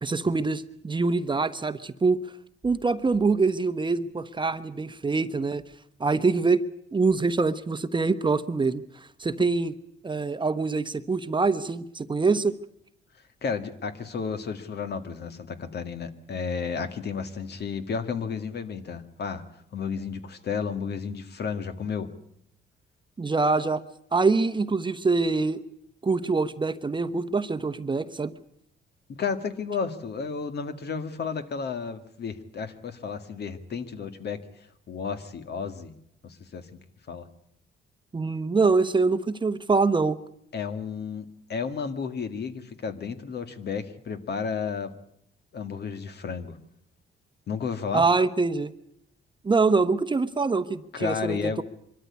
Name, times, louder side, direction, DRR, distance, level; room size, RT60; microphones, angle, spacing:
voice 1, 0.0-2.2 2.6-5.6 6.0-8.8 9.2-9.7 10.0-12.5 23.2-23.8 24.1-25.6 26.0-28.3 38.1-40.2 47.9-48.7 49.4-51.6, right 4 dB, 25° right, 11 dB, 1.0 m, -24 dB
voice 2, 13.4-19.4 19.7-22.1 29.1-34.4 34.9-35.9 36.2-36.7 37.1-37.3 40.5-44.9 45.5-46.6 47.5-48.0 50.9-51.6, left 5 dB, 55° left, 9 dB, 2.0 m, -32 dB
24.0 x 13.0 x 9.7 m, 0.76 s
cardioid pair, 90°, 20 cm